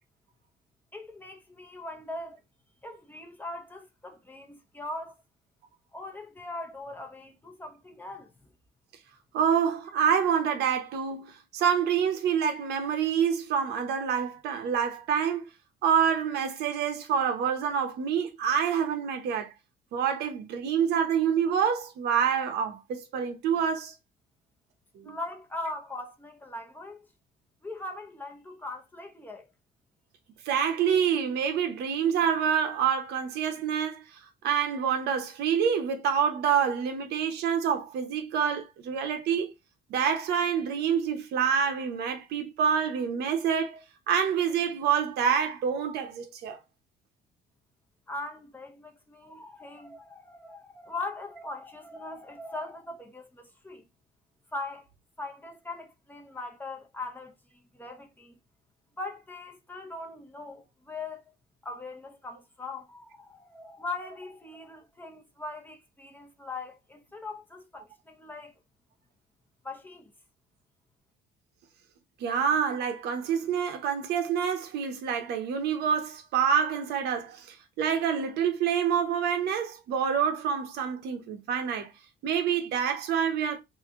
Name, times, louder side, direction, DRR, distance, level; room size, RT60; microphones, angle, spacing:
voice 1, 0.9-2.4 2.8-5.2 5.9-8.5 25.0-27.1 27.6-29.5 48.1-53.9 54.5-54.9 55.2-58.4 59.0-61.3 61.6-68.6 69.6-70.1, left 2 dB, 10° left, 0.9 m, -40 dB
voice 2, 9.3-15.4 15.8-19.5 19.9-23.9 24.9-25.2 30.5-34.0 34.4-39.5 39.9-46.6 72.2-81.9 82.2-83.6, right 7 dB, 75° right, 1.0 m, -27 dB
3.2 x 2.8 x 3.6 m
cardioid pair, 110°, 17 cm